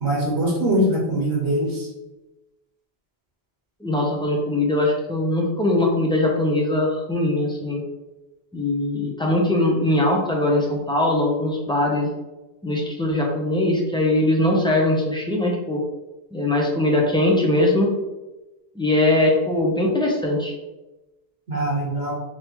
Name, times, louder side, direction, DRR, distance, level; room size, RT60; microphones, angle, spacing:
voice 1, 0.0-1.9 21.5-22.1, right 1 dB, 85° right, -2 dB, 1.3 m, -22 dB
voice 2, 3.8-7.8 8.5-12.1 12.6-15.8 16.3-17.9 18.7-20.5, left 1 dB, 5° left, -2 dB, 0.5 m, -21 dB
3.6 x 3.0 x 3.0 m, 1.0 s
omnidirectional pair, 1.1 m